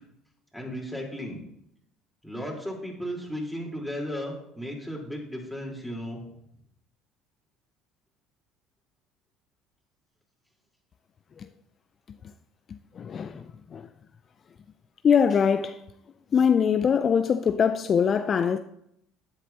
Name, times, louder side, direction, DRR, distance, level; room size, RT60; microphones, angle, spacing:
voice 1, 0.5-1.4 2.2-6.2, equal, ahead, 3.9 m, -35 dB
voice 2, 13.0-13.4 13.7-13.8 15.0-15.8 16.3-18.6, left 7 dB, 45° left, 0.4 m, -22 dB
11.5 x 9.8 x 2.9 m
hypercardioid pair, 65°, 0 cm